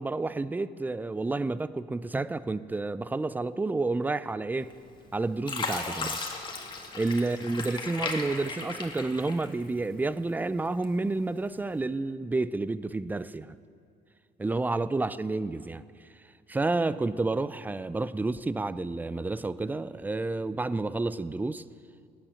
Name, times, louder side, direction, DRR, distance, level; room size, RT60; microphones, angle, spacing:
voice 1, 0.0-4.7 5.1-6.2 6.9-13.6 14.4-15.8 16.5-21.6, right 3 dB, 10° right, 16 dB, 0.4 m, -30 dB
Fill (with liquid), 4.7-5.1 5.4-9.8 10.3-11.1 11.6-11.8, left 3 dB, 30° left, 1.9 m, -36 dB
17.5 x 8.9 x 6.4 m, 2.3 s
cardioid pair, 110°, 17 cm